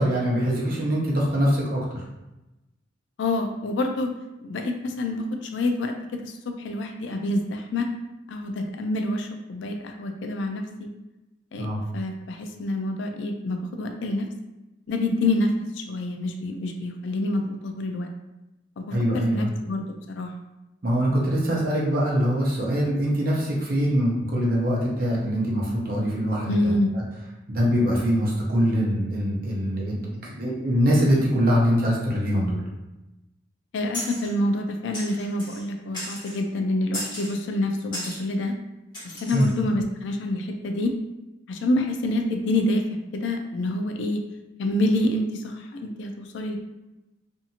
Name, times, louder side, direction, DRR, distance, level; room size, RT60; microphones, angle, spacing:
voice 1, 0.0-2.0 11.6-11.8 18.9-19.5 20.8-26.7 27.5-32.6 39.3-39.5, equal, 50° right, -4 dB, 0.7 m, -23 dB
voice 2, 3.2-4.1 4.4-6.3 6.6-7.9 8.3-10.9 11.5-11.7 11.9-14.3 14.9-18.1 18.8-20.3 26.5-26.9 33.7-38.5 39.2-40.9 41.5-44.2 44.6-46.6, left 1 dB, 70° left, 4 dB, 0.4 m, -27 dB
sound 1, 33.9-34.3 34.9-35.6 35.9-36.4 36.9-37.4 37.9-38.2 38.9-39.5, left 1 dB, 25° left, 1.2 m, -35 dB
2.7 x 2.5 x 2.7 m, 0.99 s
head